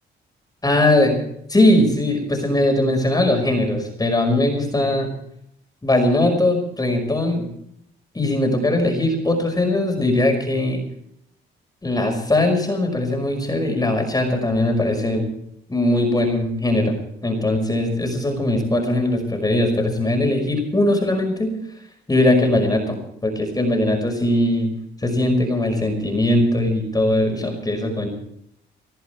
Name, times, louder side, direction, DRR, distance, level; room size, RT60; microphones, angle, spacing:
voice 1, 0.6-1.2 1.5-5.1 5.8-7.5 8.1-10.8 11.8-15.3 15.7-17.0 17.2-21.5 22.1-24.7 25.0-28.1, left 1 dB, 20° left, 3 dB, 5.5 m, -20 dB
20.5 x 14.0 x 4.6 m, 0.71 s
cardioid pair, 90°, 20 cm